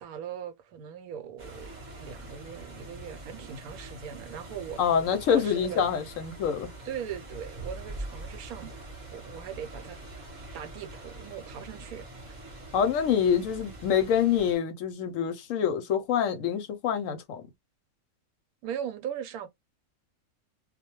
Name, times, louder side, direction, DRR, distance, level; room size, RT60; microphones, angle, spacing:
voice 1, 0.0-1.7 1.9-4.8 5.3-5.9 6.8-8.8 9.1-10.0 10.5-12.1 18.6-19.5, right 9 dB, 85° right, 1.1 m, -39 dB
sound 1, 1.4-14.5, right 1 dB, 40° right, 0.8 m, -44 dB
voice 2, 4.8-6.7 12.7-17.4, left 8 dB, 70° left, 0.9 m, -26 dB
2.3 x 2.1 x 2.8 m
omnidirectional pair, 1.5 m